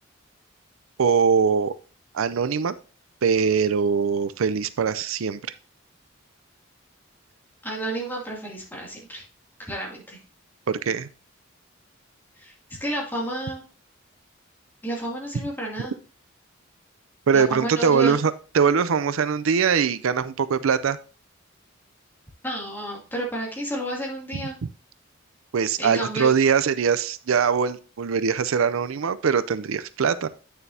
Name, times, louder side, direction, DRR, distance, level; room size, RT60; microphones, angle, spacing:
voice 1, 1.0-1.7 2.1-2.7 3.2-5.4 10.7-11.1 17.3-21.0 25.5-30.3, right 6 dB, 80° right, 14 dB, 0.5 m, -22 dB
voice 2, 7.6-9.2 9.6-10.2 12.4-12.5 12.8-13.6 14.8-15.9 17.3-18.2 22.4-24.6 25.8-26.3, right 1 dB, 10° left, -3 dB, 2.5 m, -31 dB
9.0 x 6.7 x 2.7 m, 0.36 s
head